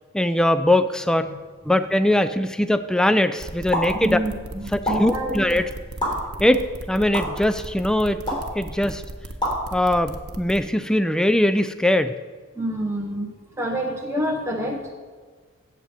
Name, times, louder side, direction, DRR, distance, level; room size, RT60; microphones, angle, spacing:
voice 1, 0.1-1.3 1.7-4.2 4.7-5.7 6.4-8.2 8.5-9.0 9.7-12.1, left 1 dB, 5° left, 11 dB, 0.3 m, -21 dB
sound 1, 3.4-10.6, right 2 dB, 75° right, 1.0 m, -36 dB
sound 2, 3.7-3.9 4.8-4.9 6.0-6.1 7.1-7.2 8.3-8.5 9.4-9.6, equal, 20° left, 3.6 m, -24 dB
voice 2, 3.9-5.6 12.6-13.3 13.6-14.9, right 1 dB, 10° right, -1 dB, 1.0 m, -27 dB
8.2 x 7.5 x 8.1 m, 1.5 s
head